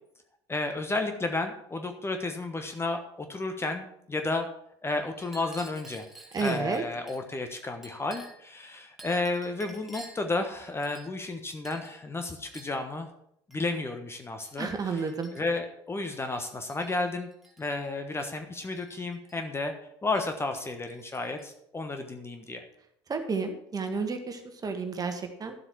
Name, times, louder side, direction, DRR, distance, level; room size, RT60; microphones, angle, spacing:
voice 1, 0.5-4.5 4.8-6.0 6.4-13.1 13.5-17.3 17.6-19.7 20.0-22.6, left 2 dB, 15° left, 6 dB, 1.2 m, -32 dB
Chink clink, 5.2-7.2 7.8-8.5 9.0-10.3 10.8-11.3 11.6-11.9 12.5-12.8 13.5-13.7 14.4-14.6 15.0-15.7 16.4-17.0 17.3-17.7 18.7-19.4 20.1-20.3 20.6-21.5, right 2 dB, ahead, 2.3 m, -50 dB
voice 2, 6.3-6.8 14.6-15.3 23.1-25.5, right 4 dB, 25° right, 6 dB, 1.7 m, -31 dB
12.5 x 7.8 x 4.6 m, 0.74 s
figure-of-eight pair, 65°, 14 cm